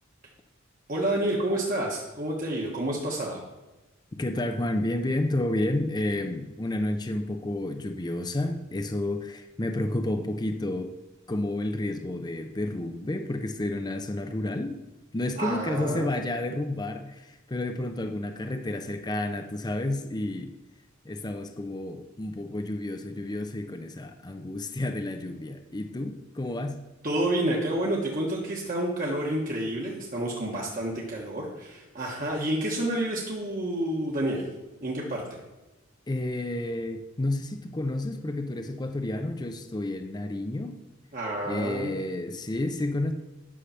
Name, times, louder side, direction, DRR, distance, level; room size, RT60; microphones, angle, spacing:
voice 1, 0.9-3.4 15.4-16.1 27.0-34.5 34.8-35.4 41.1-41.9, right 1 dB, 45° right, -3 dB, 1.4 m, -29 dB
voice 2, 4.1-10.9 11.3-14.8 15.1-20.5 21.0-26.9 36.1-40.8 41.4-43.1, left 1 dB, 20° left, 6 dB, 0.6 m, -30 dB
9.9 x 6.5 x 5.7 m, 1.1 s
head